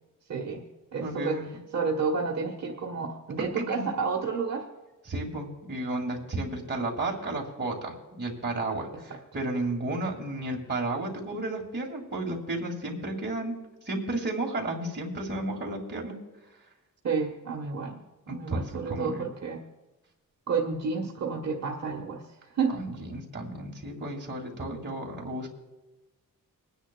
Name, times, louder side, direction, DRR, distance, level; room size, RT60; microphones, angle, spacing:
voice 1, 0.3-0.6 0.9-1.4 1.7-4.6 9.1-9.2 17.0-18.0 18.3-19.6 20.5-22.8, right 5 dB, 50° right, 0 dB, 1.2 m, -30 dB
voice 2, 1.0-1.4 3.7-3.9 5.1-13.6 13.8-16.2 18.3-19.3 22.7-25.5, right 2 dB, 30° right, 0 dB, 2.0 m, -33 dB
26.5 x 10.0 x 2.2 m, 1.1 s
wide cardioid pair, 165°, 34 cm